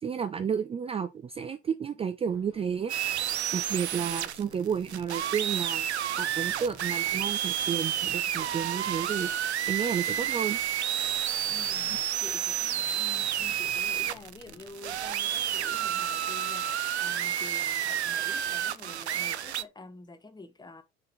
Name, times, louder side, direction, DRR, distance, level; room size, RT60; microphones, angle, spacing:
voice 1, 0.0-3.2 3.5-5.9 6.2-10.6, right 7 dB, 20° right, 0.5 m, -32 dB
sound 1, 2.3-16.2, left 6 dB, 50° left, 1.8 m, -56 dB
sound 2, 2.9-19.6, right 10 dB, 80° right, 0.5 m, -30 dB
voice 2, 11.5-20.8, left 2 dB, 15° left, 1.0 m, -48 dB
6.5 x 3.9 x 3.9 m
figure-of-eight pair, 65°, 33 cm